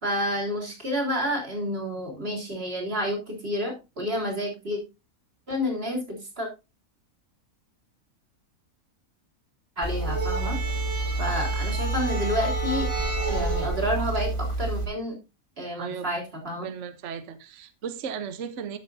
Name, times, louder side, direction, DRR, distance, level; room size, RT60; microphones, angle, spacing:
voice 1, 0.0-4.8 5.5-6.5 9.8-10.6 11.2-12.9 13.3-15.2 15.6-16.7, equal, 40° right, 3.9 m, -29 dB
sound 1, 9.8-14.9, right 2 dB, 20° right, 2.8 m, -27 dB
voice 2, 15.8-16.1 16.6-18.8, right 7 dB, 60° right, 1.2 m, -35 dB
13.0 x 7.3 x 2.6 m
omnidirectional pair, 1.5 m